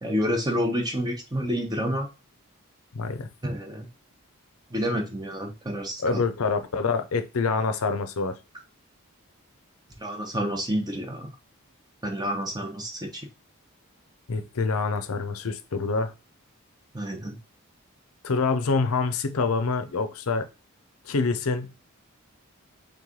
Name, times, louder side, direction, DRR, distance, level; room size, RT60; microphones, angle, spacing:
voice 1, 0.0-2.1 3.4-3.9 4.7-6.2 10.0-11.3 12.0-13.3 16.9-17.4, equal, 20° right, 0.7 m, -29 dB
voice 2, 2.9-3.3 6.0-8.4 14.3-16.1 18.2-20.5 21.0-21.7, left 4 dB, 75° left, 0.6 m, -26 dB
3.5 x 3.1 x 3.7 m
head